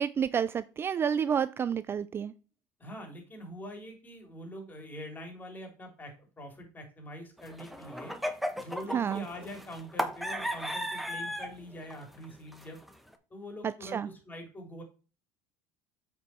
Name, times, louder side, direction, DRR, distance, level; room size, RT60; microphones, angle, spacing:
voice 1, 0.0-2.3 8.9-9.2 13.6-14.1, right 7 dB, 30° right, 16 dB, 0.3 m, -30 dB
voice 2, 2.8-8.2 8.6-12.8 13.3-14.8, equal, 20° left, 3 dB, 3.2 m, -44 dB
sound 1, 7.4-11.6 11.9-12.3 12.5-13.1, equal, ahead, 1.0 m, -35 dB
8.1 x 4.7 x 4.4 m, 0.34 s
supercardioid pair, 95°, 8 cm